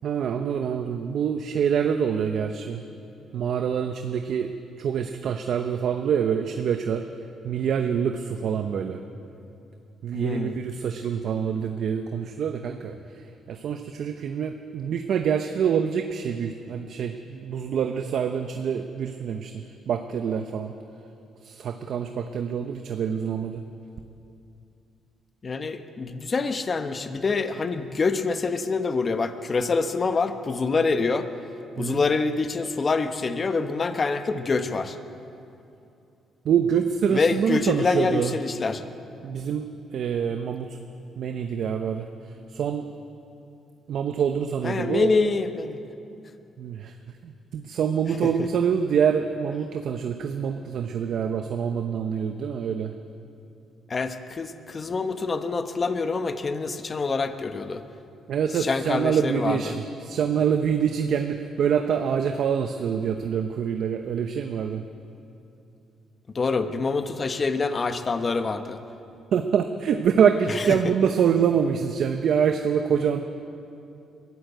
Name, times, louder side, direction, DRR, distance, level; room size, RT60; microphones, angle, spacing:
voice 1, 0.0-2.8 3.3-4.5 4.8-7.0 7.4-9.0 10.0-12.9 13.5-20.7 21.4-23.6 31.8-32.0 36.4-38.4 39.2-39.7 39.9-40.8 41.2-42.1 42.5-42.9 43.9-45.1 46.6-46.9 47.2-52.9 58.3-64.8 69.3-73.2, right 7 dB, 65° right, 6 dB, 0.9 m, -25 dB
voice 2, 10.1-10.6 25.4-31.3 31.8-35.0 37.1-38.8 44.6-45.8 48.2-48.5 53.9-57.8 58.6-59.7 66.3-68.8 70.5-70.6, left 4 dB, 35° left, 8 dB, 1.2 m, -26 dB
22.5 x 14.5 x 8.1 m, 2.7 s
cardioid pair, 90°, 0 cm